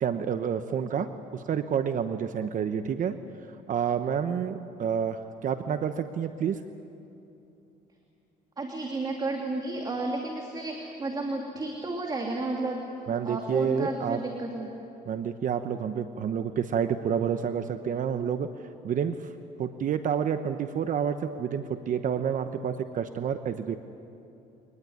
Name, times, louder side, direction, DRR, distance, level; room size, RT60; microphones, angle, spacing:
voice 1, 0.0-3.2 3.7-6.6 13.1-14.2 15.1-18.5 18.8-19.2 19.6-23.8, right 7 dB, 50° right, 9 dB, 1.0 m, -29 dB
voice 2, 8.6-12.8 13.2-14.7, right 2 dB, 25° right, 1 dB, 2.9 m, -32 dB
24.0 x 19.5 x 9.6 m, 2.8 s
cardioid pair, 110°, 17 cm